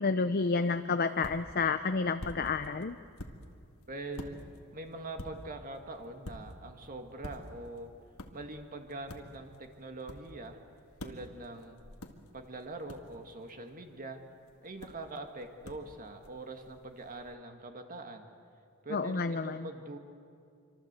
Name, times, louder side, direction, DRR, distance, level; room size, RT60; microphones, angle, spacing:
voice 1, 0.0-3.0 18.9-19.7, left 4 dB, 45° left, 9 dB, 0.7 m, -30 dB
sound 1, 0.6-17.4, left 1 dB, 65° left, 2.0 m, -50 dB
voice 2, 3.9-4.4 4.7-7.9 8.3-10.6 11.0-11.8 12.3-14.2 14.6-18.3 18.8-20.0, right 2 dB, 40° right, 5 dB, 1.9 m, -43 dB
26.0 x 25.0 x 8.2 m, 2.4 s
head